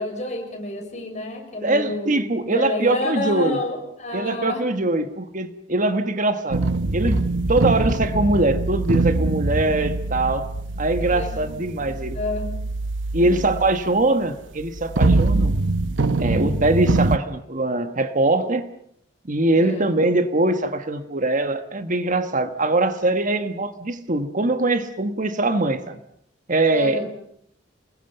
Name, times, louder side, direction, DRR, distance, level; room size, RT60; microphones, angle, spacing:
voice 1, 0.0-4.7 11.0-12.7 13.2-13.3 16.2-16.6 19.6-19.9 26.7-27.1, left 2 dB, 40° left, 6.9 m, -30 dB
voice 2, 1.6-3.6 4.1-6.6 6.9-10.5 10.8-12.2 13.1-15.6 16.2-18.7 19.2-26.0 26.5-27.0, right 2 dB, 45° right, 1.4 m, -22 dB
sound 1, 6.5-13.9 14.6-17.2, right 2 dB, 85° right, 1.0 m, -23 dB
28.5 x 21.5 x 6.9 m
head